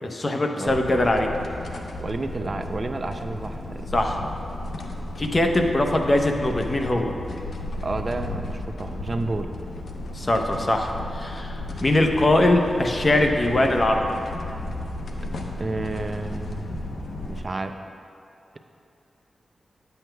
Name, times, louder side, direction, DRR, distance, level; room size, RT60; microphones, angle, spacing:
voice 1, 0.0-1.3 3.9-4.3 5.2-7.1 10.1-14.0, left 1 dB, 40° left, 3 dB, 0.7 m, -22 dB
sound 1, 0.7-17.4, left 1 dB, 75° left, 0.6 m, -34 dB
voice 2, 2.0-3.9 7.8-9.5 15.6-16.8 17.2-17.8, right 2 dB, 40° right, 7 dB, 0.4 m, -30 dB
10.0 x 7.8 x 2.2 m, 2.7 s
cardioid pair, 65°, 0 cm